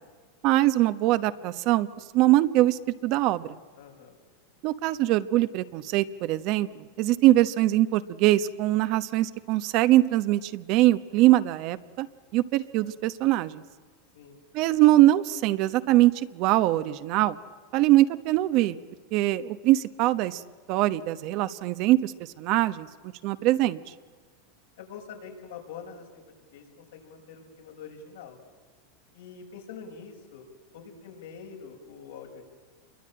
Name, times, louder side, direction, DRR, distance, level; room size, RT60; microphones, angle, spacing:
voice 1, 0.4-1.9 2.1-3.6 4.6-12.1 12.3-13.6 14.5-17.4 17.7-18.8 19.1-20.4 20.7-22.9 23.2-23.8, right 16 dB, 50° right, 12 dB, 1.0 m, -22 dB
voice 2, 3.8-4.2 14.1-14.4 24.8-26.2 26.5-26.7 26.9-28.4 29.1-30.5 30.7-32.5, left 6 dB, 80° left, 2 dB, 6.3 m, -44 dB
27.5 x 23.0 x 8.8 m, 1.4 s
supercardioid pair, 125°, 0 cm